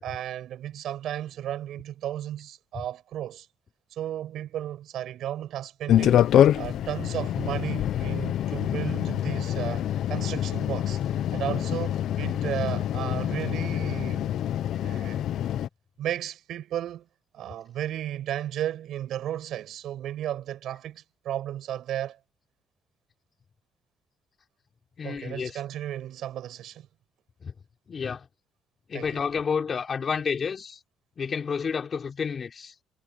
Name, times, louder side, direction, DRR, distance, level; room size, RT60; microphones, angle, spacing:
voice 1, 0.0-3.5 3.9-11.0 11.3-14.3 14.8-15.2 16.0-17.1 17.3-22.2 25.0-26.9 28.9-29.1, right 11 dB, 65° right, 6.7 m, -34 dB
sound 1, 5.9-15.7, left 11 dB, 65° left, 0.8 m, -26 dB
voice 2, 25.0-25.6 27.4-27.5 27.9-28.3 28.9-30.8 31.2-32.7, left 6 dB, 35° left, 5.2 m, -30 dB
cardioid pair, 145°, 0 cm